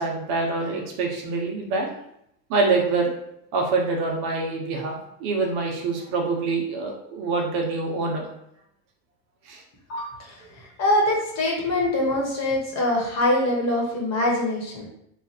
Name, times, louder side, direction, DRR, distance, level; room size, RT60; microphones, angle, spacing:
voice 1, 0.0-1.9 2.5-3.1 3.5-8.3 9.5-9.6, right 3 dB, 55° right, 1 dB, 1.0 m, -25 dB
voice 2, 10.8-14.8, left 1 dB, 40° left, -2 dB, 1.3 m, -23 dB
3.1 x 2.4 x 4.2 m, 0.75 s
supercardioid pair, 125°, 43 cm